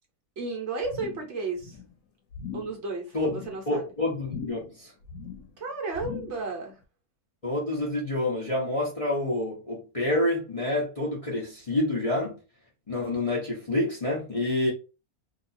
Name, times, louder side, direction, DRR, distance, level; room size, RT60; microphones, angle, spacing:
voice 1, 0.4-1.8 2.5-3.9 5.6-6.8, right 3 dB, 60° right, 1.0 m, -33 dB
sound 1, 0.8-1.3 1.6-2.0 2.3-2.8 3.2-3.6 4.2-4.8 5.0-5.5 5.9-6.5 6.8-6.9, left 6 dB, 90° left, 1.1 m, -40 dB
voice 2, 3.7-4.9 7.4-12.4 12.9-14.7, left 1 dB, 30° left, 0.7 m, -28 dB
2.8 x 2.3 x 4.0 m
omnidirectional pair, 1.5 m